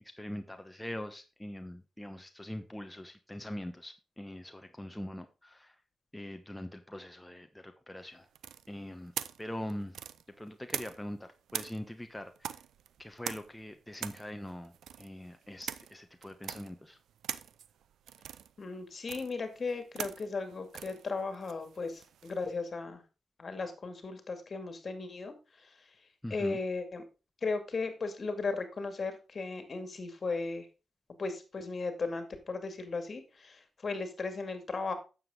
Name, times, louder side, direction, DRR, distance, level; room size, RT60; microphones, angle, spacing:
voice 1, 0.2-5.7 6.1-8.3 8.7-9.1 9.4-10.0 10.4-12.5 13.0-14.7 15.0-17.0 26.2-26.6, left 1 dB, 10° left, 6 dB, 1.0 m, -42 dB
sound 1, 8.3-11.2 11.5-22.4, right 9 dB, 85° right, 0.5 m, -43 dB
voice 2, 18.6-23.0 23.4-25.3 25.6-25.7 26.3-27.0 27.4-30.7 31.2-34.9, left 4 dB, 50° left, 8 dB, 2.2 m, -36 dB
9.3 x 7.3 x 3.8 m, 0.31 s
cardioid pair, 55°, 0 cm